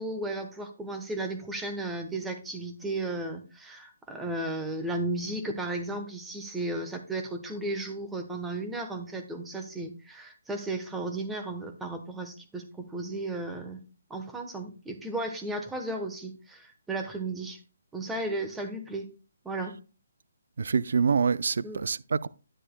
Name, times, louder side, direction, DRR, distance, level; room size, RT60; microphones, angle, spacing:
voice 1, 0.0-13.8 14.1-17.6 17.9-19.1 19.4-19.7 21.6-21.8, right 2 dB, 5° right, 1.0 m, -34 dB
voice 2, 20.6-22.3, right 5 dB, 70° right, 0.4 m, -26 dB
10.0 x 9.9 x 2.2 m
hypercardioid pair, 160°, 0 cm